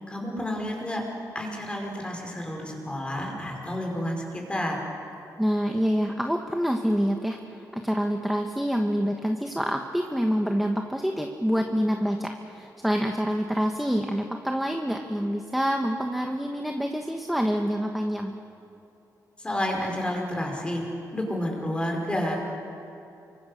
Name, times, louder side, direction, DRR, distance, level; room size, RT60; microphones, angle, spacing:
voice 1, 0.1-1.0 1.4-4.8 19.4-20.8 21.1-22.4, left 1 dB, 15° left, 1 dB, 5.2 m, -30 dB
voice 2, 5.4-18.3, equal, ahead, 3 dB, 1.4 m, -27 dB
29.5 x 24.5 x 6.6 m, 2.7 s
wide cardioid pair, 140°, 7 cm